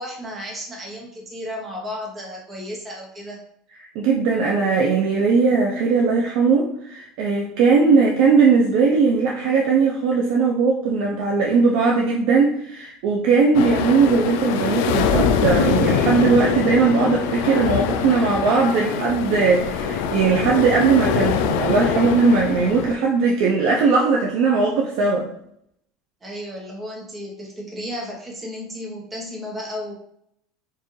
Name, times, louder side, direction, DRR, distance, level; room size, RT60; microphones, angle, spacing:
voice 1, 0.0-3.4 26.2-29.9, left 1 dB, 15° right, -1 dB, 0.9 m, -33 dB
voice 2, 4.0-25.3, right 4 dB, 60° right, -1 dB, 0.5 m, -19 dB
sound 1, 13.5-22.9, left 6 dB, 70° left, 0.3 m, -23 dB
4.5 x 2.4 x 3.1 m, 0.73 s
cardioid pair, 160°, 0 cm